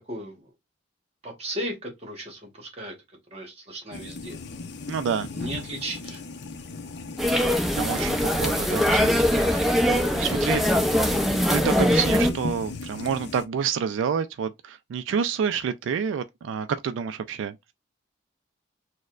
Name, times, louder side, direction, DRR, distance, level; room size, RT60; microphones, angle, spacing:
voice 1, 0.1-0.5 1.2-2.9 3.3-4.4 5.3-6.2 9.3-9.6, right 1 dB, 35° right, 1.0 m, -36 dB
sound 1, 3.9-13.5, left 3 dB, 60° left, 0.5 m, -37 dB
voice 2, 4.9-5.3 7.7-10.9 11.1-17.7, right 7 dB, 80° right, 0.3 m, -29 dB
sound 2, 7.2-12.3, equal, ahead, 0.5 m, -22 dB
6.2 x 2.1 x 2.4 m
head